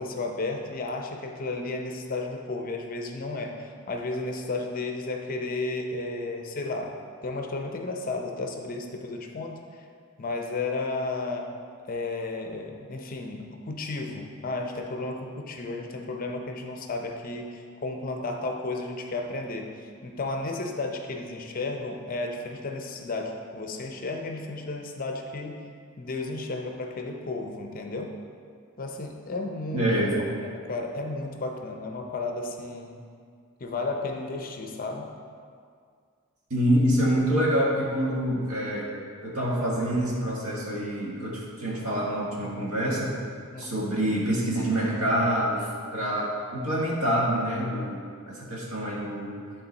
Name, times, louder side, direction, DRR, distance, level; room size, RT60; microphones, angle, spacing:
voice 1, 0.0-6.9 7.2-9.9 10.2-11.5 11.9-25.6 26.0-28.1 28.8-29.9 30.4-33.0 33.6-35.1 43.5-43.7, left 2 dB, 40° left, 2 dB, 0.6 m, -33 dB
voice 2, 29.7-30.2 36.5-38.9 39.2-43.2 43.6-45.7 45.9-49.3, equal, 80° right, -4 dB, 1.6 m, -26 dB
10.5 x 3.8 x 4.0 m, 2.2 s
head